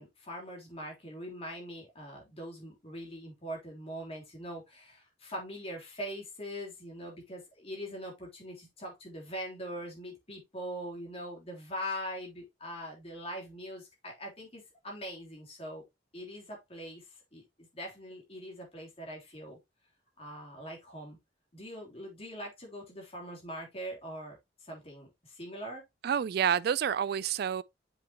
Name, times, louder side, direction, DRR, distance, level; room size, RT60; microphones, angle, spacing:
voice 1, 0.0-15.8 16.1-19.6 20.2-21.2 21.5-25.8, equal, 30° left, 3.2 m, -42 dB
voice 2, 26.0-27.6, right 8 dB, 55° right, 0.3 m, -28 dB
7.2 x 5.8 x 2.9 m
head